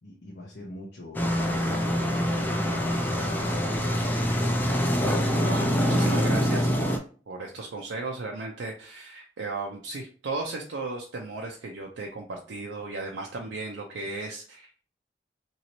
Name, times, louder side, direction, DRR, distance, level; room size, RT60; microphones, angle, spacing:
voice 1, 0.0-4.2, left 1 dB, 70° left, -3 dB, 0.7 m, -43 dB
sound 1, 1.1-7.0, equal, 10° left, 0.4 m, -25 dB
voice 2, 5.4-7.0 7.3-14.7, right 3 dB, 85° right, 0 dB, 0.5 m, -35 dB
3.0 x 2.7 x 2.9 m, 0.41 s
head